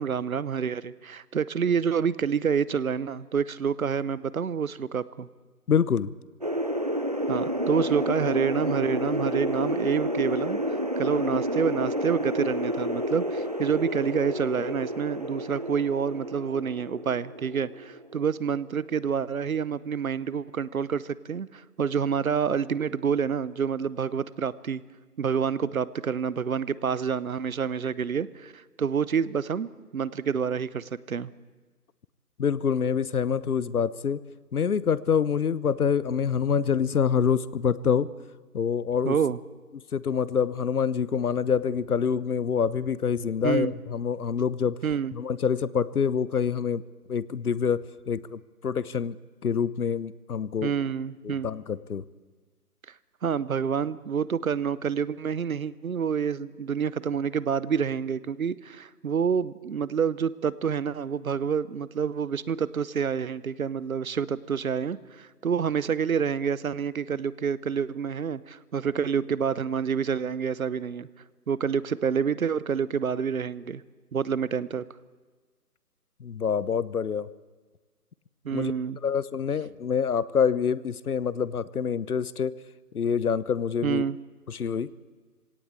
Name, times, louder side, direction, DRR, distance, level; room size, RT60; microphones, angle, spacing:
voice 1, 0.0-5.3 7.3-10.6 11.0-24.8 25.2-31.3 39.0-39.4 43.4-43.7 44.8-45.1 50.6-51.5 53.2-71.1 71.5-73.8 74.1-74.8 78.4-79.0 83.8-84.2, right 7 dB, 60° right, 19 dB, 0.9 m, -28 dB
voice 2, 5.7-6.1 32.4-34.2 34.5-38.1 38.5-39.2 39.9-44.8 45.1-46.8 47.1-47.8 48.1-49.2 49.4-50.7 51.2-52.0 76.2-77.3 78.5-78.7 79.0-82.6 82.9-84.0 84.5-84.9, left 7 dB, 70° left, 19 dB, 0.9 m, -26 dB
sound 1, 6.4-18.8, equal, 25° right, 0.6 m, -30 dB
21.5 x 17.5 x 8.5 m, 1.4 s
figure-of-eight pair, 160°, 47 cm